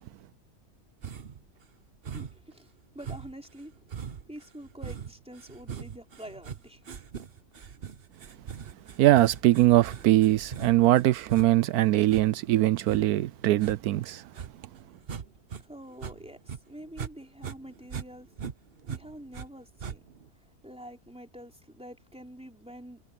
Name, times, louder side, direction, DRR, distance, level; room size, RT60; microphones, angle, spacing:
sound 1, 1.0-1.5 2.0-2.5 3.0-15.6 15.9-17.1 17.4-19.5 19.8-20.3, right 7 dB, 45° right, 1.1 m, -41 dB
voice 1, 2.1-2.7 2.9-3.7 4.3-6.8 15.6-18.3 18.9-20.0 20.6-23.0, equal, 5° right, 3.9 m, -46 dB
voice 2, 9.0-14.2, right 15 dB, 80° right, 1.1 m, -22 dB
omnidirectional pair, 1.6 m